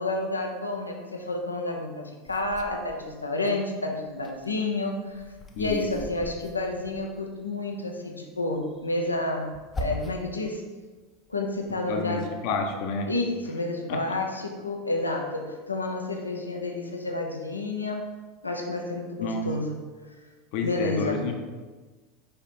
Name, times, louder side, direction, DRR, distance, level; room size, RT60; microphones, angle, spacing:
voice 1, 0.0-5.2 5.6-10.6 11.3-12.3 13.1-18.1 18.4-19.8 20.6-21.2, left 2 dB, 85° left, 2 dB, 0.8 m, -30 dB
sound 1, 2.3-3.6 4.0-7.5 8.5-10.4 10.8-11.8, left 1 dB, 20° left, 0.7 m, -41 dB
voice 2, 5.5-5.9 11.9-13.1 13.9-14.2 19.2-19.5 20.5-21.3, left 4 dB, 50° left, 3 dB, 0.9 m, -30 dB
5.1 x 4.9 x 4.4 m, 1.3 s
figure-of-eight pair, 80°, 0 cm